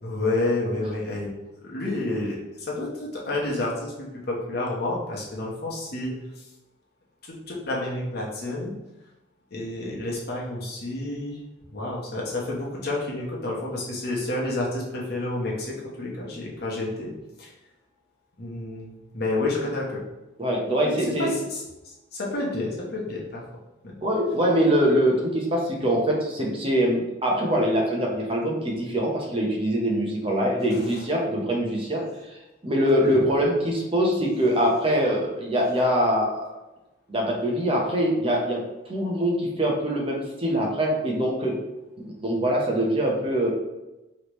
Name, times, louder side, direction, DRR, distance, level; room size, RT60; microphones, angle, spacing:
voice 1, 0.0-1.3 1.6-6.5 7.2-8.7 9.5-11.4 11.7-17.1 17.4-17.5 18.4-20.0 20.9-23.4 23.8-23.9 30.7-30.9 33.0-33.2, left 2 dB, 50° left, -3 dB, 1.0 m, -30 dB
voice 2, 20.4-21.3 24.0-32.0 32.6-36.4 37.1-38.6 38.9-41.5 42.0-43.5, equal, 25° right, -1 dB, 0.8 m, -23 dB
4.8 x 3.2 x 3.1 m, 1.0 s
head